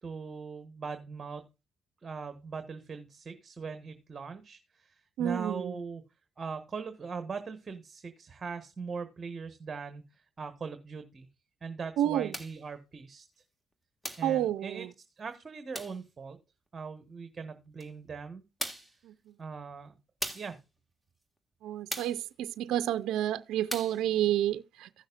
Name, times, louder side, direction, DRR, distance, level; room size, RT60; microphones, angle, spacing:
voice 1, 0.0-1.5 2.0-6.0 6.4-11.3 11.6-13.3 14.2-14.8 15.2-16.4 16.7-18.4 19.4-19.9 20.3-20.6, right 5 dB, 35° right, 1.2 m, -40 dB
voice 2, 5.2-5.8 12.0-12.4 14.2-14.9 19.0-19.4 21.6-24.9, right 12 dB, 85° right, 0.5 m, -30 dB
sound 1, 12.3-12.6 14.0-14.3 15.7-16.0 17.8-17.9 18.6-19.0 20.2-20.6 21.9-22.2 23.7-24.0, right 1 dB, 5° left, 1.7 m, -38 dB
16.0 x 6.4 x 2.4 m
cardioid pair, 90°, 0 cm